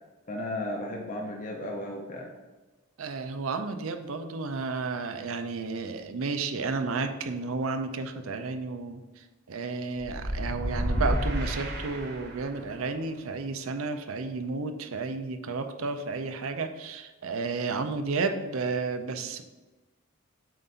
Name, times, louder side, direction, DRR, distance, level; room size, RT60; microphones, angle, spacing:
voice 1, 0.3-2.3, left 1 dB, 35° left, -1 dB, 0.6 m, -34 dB
voice 2, 3.0-19.4, right 4 dB, 70° right, 7 dB, 0.5 m, -32 dB
sound 1, 10.1-12.6, equal, 50° right, 1.0 m, -30 dB
7.4 x 2.6 x 5.5 m, 1.2 s
head